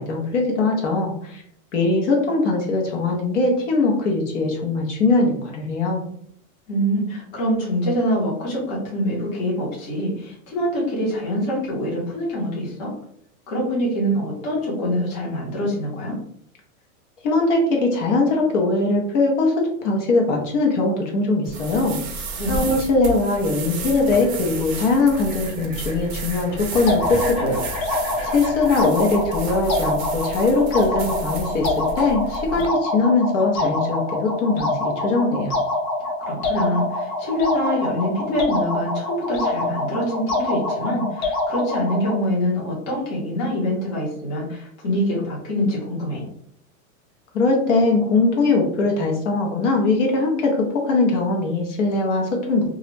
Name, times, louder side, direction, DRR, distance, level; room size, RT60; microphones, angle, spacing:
voice 1, 0.0-1.4 1.7-6.0 17.2-22.2 22.5-27.6 28.2-35.5 47.3-52.7, left 3 dB, 60° left, 0 dB, 0.8 m, -21 dB
voice 2, 6.7-12.9 13.5-16.2 22.3-22.6 36.3-46.2, equal, 25° left, -5 dB, 0.7 m, -25 dB
sound 1, 21.4-32.7, right 2 dB, 50° right, 0.6 m, -33 dB
sound 2, 23.3-28.9, left 1 dB, 10° left, 0.3 m, -38 dB
sound 3, 26.9-42.2, left 2 dB, 85° left, 1.0 m, -26 dB
2.3 x 2.0 x 3.1 m, 0.67 s
supercardioid pair, 175°, 42 cm